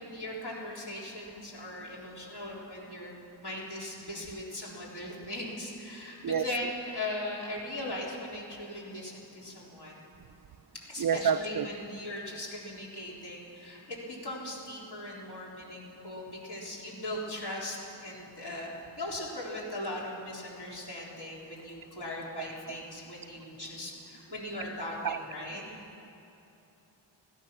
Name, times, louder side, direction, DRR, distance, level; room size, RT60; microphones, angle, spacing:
voice 1, 0.0-3.2 3.4-10.0 10.7-25.7, left 1 dB, 55° left, -4 dB, 3.7 m, -39 dB
voice 2, 11.0-11.7 22.4-22.8 25.0-25.2, right 7 dB, 50° right, 11 dB, 0.5 m, -29 dB
16.0 x 12.5 x 6.0 m, 2.9 s
cardioid pair, 70°, 45 cm